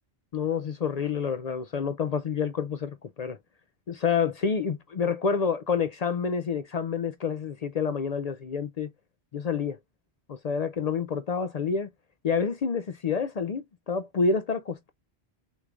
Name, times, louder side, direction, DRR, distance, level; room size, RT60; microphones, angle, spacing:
voice 1, 0.3-3.4 3.9-8.9 9.3-9.8 10.3-11.9 12.2-14.9, left 5 dB, 55° left, 0.4 m, -28 dB
6.5 x 3.2 x 2.4 m
omnidirectional pair, 1.1 m